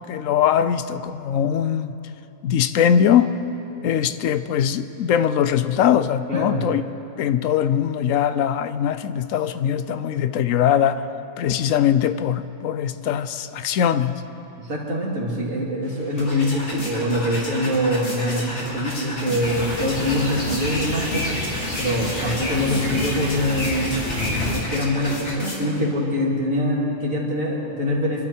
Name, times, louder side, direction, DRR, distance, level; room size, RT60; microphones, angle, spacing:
voice 1, 0.1-1.9 2.4-3.4 3.8-6.8 7.2-11.0 11.4-14.2, left 9 dB, 75° left, 12 dB, 1.1 m, -21 dB
voice 2, 6.3-6.7 14.6-21.3 21.8-23.9 24.5-28.2, left 1 dB, 80° right, -4 dB, 3.2 m, -24 dB
sound 1, 15.8-25.9, left 1 dB, 60° left, 2.8 m, -32 dB
sound 2, 19.4-24.5, left 1 dB, 35° left, 3.3 m, -28 dB
26.0 x 12.0 x 4.5 m, 2.9 s
omnidirectional pair, 1.4 m